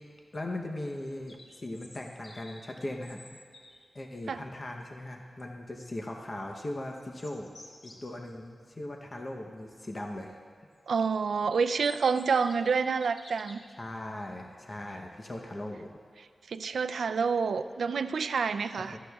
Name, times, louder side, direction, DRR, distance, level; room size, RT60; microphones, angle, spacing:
voice 1, 0.3-3.4 3.9-7.5 7.8-10.4 13.7-15.9 18.8-19.0, left 1 dB, 30° left, 1 dB, 0.8 m, -39 dB
sound 1, 1.3-3.9 6.7-8.1 10.9-13.8, left 1 dB, 60° left, 1.1 m, -53 dB
voice 2, 10.9-13.6 16.5-19.0, right 5 dB, 90° right, 10 dB, 0.4 m, -28 dB
17.5 x 13.0 x 2.3 m, 2.2 s
wide cardioid pair, 130°, 0 cm